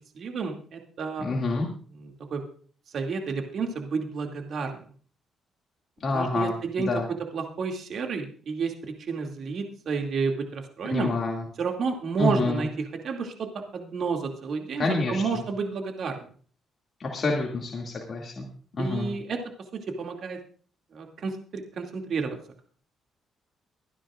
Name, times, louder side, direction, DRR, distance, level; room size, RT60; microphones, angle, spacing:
voice 1, 0.1-1.3 2.3-2.4 2.9-4.8 6.1-6.9 7.3-11.1 11.6-12.7 13.0-16.3 18.8-19.4 20.0-20.4 20.9-22.6, right 5 dB, 60° right, 3 dB, 2.5 m, -30 dB
voice 2, 1.2-1.7 6.0-7.1 10.8-11.5 12.2-12.7 14.8-15.4 17.0-18.5 18.8-19.1, left 3 dB, 45° left, -1 dB, 2.4 m, -28 dB
24.5 x 10.0 x 2.5 m, 0.44 s
cardioid pair, 90°, 0 cm